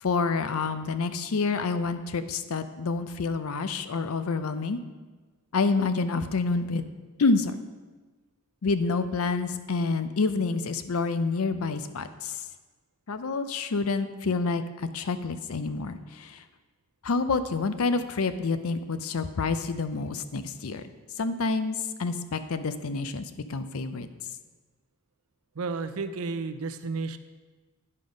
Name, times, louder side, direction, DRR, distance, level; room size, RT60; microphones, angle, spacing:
voice 1, 0.0-4.8 5.5-6.9 7.2-7.6 8.6-12.4 13.1-16.4 17.0-20.8 21.2-24.1, left 4 dB, 75° left, 11 dB, 0.5 m, -28 dB
voice 2, 25.6-27.2, right 4 dB, 75° right, 10 dB, 0.5 m, -32 dB
9.8 x 5.5 x 5.1 m, 1.3 s
head